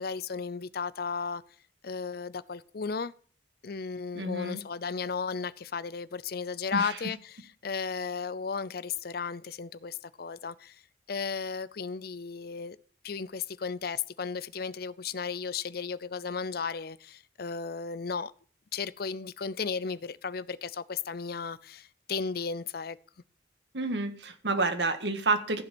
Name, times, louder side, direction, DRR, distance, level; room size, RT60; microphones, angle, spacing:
voice 1, 0.0-1.4 1.8-3.1 3.6-10.8 11.1-12.8 13.0-18.3 18.7-23.0, left 5 dB, 60° left, 0.6 m, -35 dB
voice 2, 4.1-4.6 6.7-7.0 23.7-25.6, right 3 dB, 80° right, 1.7 m, -29 dB
14.5 x 7.5 x 6.1 m
head